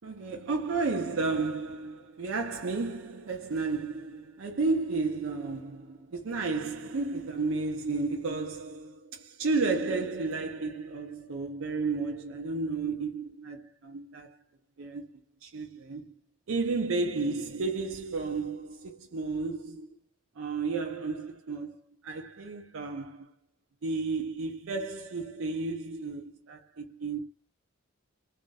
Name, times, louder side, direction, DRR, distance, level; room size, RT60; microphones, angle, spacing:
voice 1, 0.0-14.4 14.8-15.1 15.4-16.1 16.5-19.9 20.4-21.8 22.0-23.3 23.8-27.2, right 3 dB, 65° right, 0.5 m, -32 dB
2.4 x 2.3 x 3.9 m
head